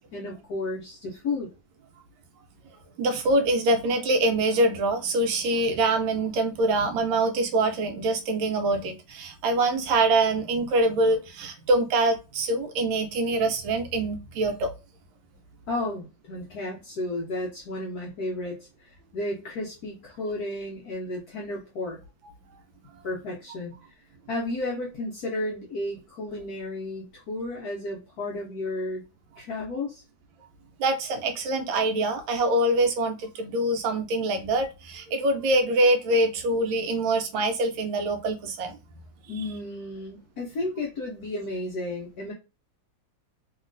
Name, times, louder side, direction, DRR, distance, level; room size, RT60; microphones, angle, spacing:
voice 1, 0.1-1.5 15.7-22.0 23.0-23.7 24.3-29.0 29.4-30.0 39.3-42.3, left 2 dB, 70° left, 0.9 m, -33 dB
voice 2, 3.0-14.7 30.8-38.8, right 2 dB, 75° right, 1.2 m, -24 dB
3.0 x 2.8 x 2.5 m
omnidirectional pair, 2.3 m